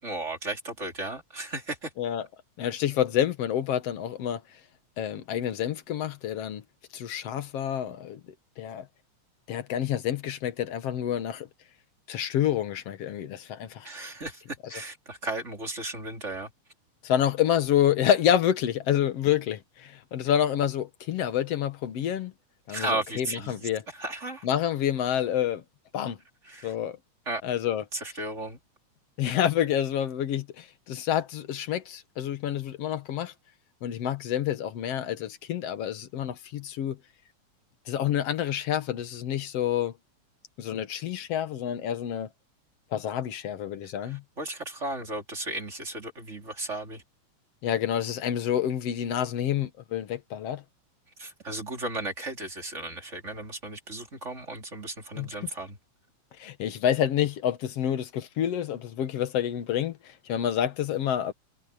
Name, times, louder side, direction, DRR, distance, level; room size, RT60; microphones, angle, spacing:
voice 1, 0.0-1.9 13.8-16.5 22.7-23.5 23.9-24.5 26.4-26.7 27.3-27.4 27.9-28.6 44.0-47.0 51.2-55.8, right 2 dB, 25° right, 3.1 m, -35 dB
voice 2, 2.6-4.4 5.0-6.6 6.9-8.2 8.6-8.9 9.5-11.5 12.1-13.9 17.0-22.3 22.7-23.8 24.4-25.6 25.9-26.2 26.6-27.0 27.4-27.8 29.2-33.3 33.8-37.0 37.9-39.9 40.6-42.3 42.9-44.2 47.6-50.6 55.2-55.3 56.4-61.3, left 10 dB, 60° left, 2.2 m, -28 dB
omnidirectional pair, 3.5 m